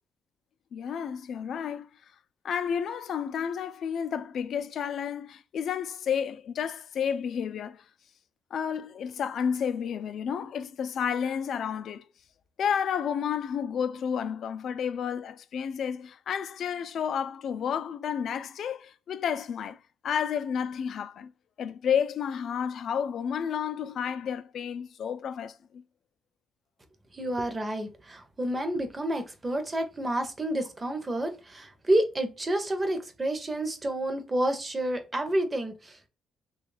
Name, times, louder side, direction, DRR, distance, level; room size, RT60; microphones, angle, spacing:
voice 1, 0.7-1.9 2.4-7.8 8.5-12.1 12.6-19.8 20.0-21.3 21.6-25.8, left 7 dB, 60° left, 0.3 m, -31 dB
voice 2, 27.1-36.1, right 1 dB, 20° right, 0.7 m, -29 dB
3.2 x 2.3 x 3.2 m
cardioid pair, 115°, 0 cm